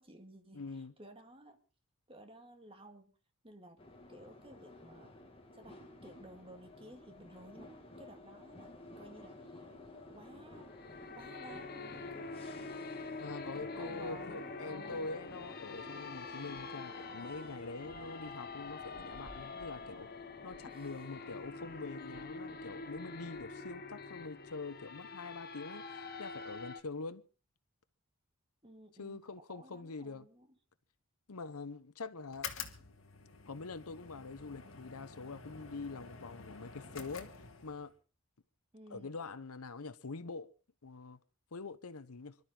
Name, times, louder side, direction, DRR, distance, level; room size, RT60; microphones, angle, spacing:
voice 1, 0.0-1.6 2.1-3.2 3.4-5.1 5.5-7.7 8.0-8.7 9.0-9.6 10.1-10.7 11.0-12.3 13.5-15.1 20.6-20.9 28.6-30.6 38.7-39.2, right 1 dB, 25° right, 2.1 m, -55 dB
voice 2, 0.5-0.9 13.2-20.1 20.4-27.2 29.0-30.3 31.3-32.5 33.5-37.3 37.6-37.9 38.9-40.5 40.8-41.2 41.5-42.4, left 3 dB, 80° left, 0.9 m, -44 dB
sound 1, 3.8-23.5, left 2 dB, 25° left, 2.1 m, -52 dB
sound 2, 10.6-26.8, left 3 dB, 45° left, 1.2 m, -46 dB
sound 3, 32.3-37.9, left 6 dB, 60° left, 1.9 m, -48 dB
26.0 x 12.5 x 3.8 m
head